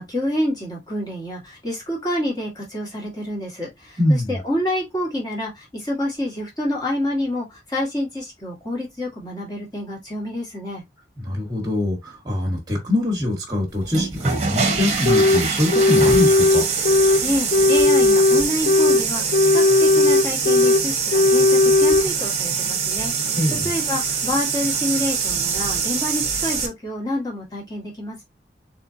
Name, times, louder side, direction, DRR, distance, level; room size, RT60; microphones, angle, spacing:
voice 1, 0.0-10.8 17.2-19.2 19.5-23.4 23.6-28.2, left 1 dB, 20° left, 1.8 m, -28 dB
voice 2, 4.0-4.4 11.2-16.6 23.4-23.7, left 1 dB, 20° right, 1.5 m, -23 dB
sound 1, 13.8-26.7, right 5 dB, 40° right, 1.1 m, -24 dB
sound 2, 15.1-15.4 15.7-17.2 17.5-19.0 19.3-20.8 21.1-22.1, left 2 dB, 50° left, 0.3 m, -16 dB
4.3 x 3.6 x 2.7 m
head